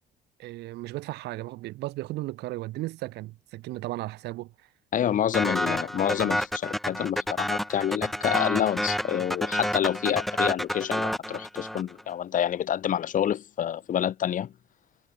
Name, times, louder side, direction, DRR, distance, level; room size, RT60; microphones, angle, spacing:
voice 1, 0.4-4.5 5.4-5.5 6.2-6.3, right 18 dB, 85° right, 2.8 m, -35 dB
voice 2, 4.9-14.5, left 10 dB, 50° left, 1.6 m, -28 dB
sound 1, 5.3-12.0, equal, ahead, 1.0 m, -29 dB
cardioid pair, 110°, 17 cm